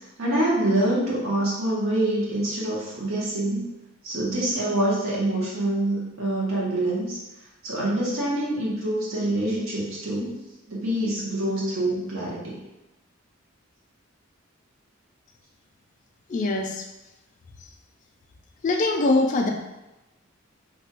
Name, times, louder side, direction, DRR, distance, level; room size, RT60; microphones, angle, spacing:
voice 1, 0.2-3.6 4.0-7.2 7.6-10.3 10.7-12.6, right 1 dB, 75° right, -6 dB, 0.9 m, -25 dB
voice 2, 16.3-16.8 18.6-19.5, left 2 dB, 40° left, 3 dB, 0.3 m, -22 dB
3.4 x 2.2 x 2.8 m, 1.0 s
head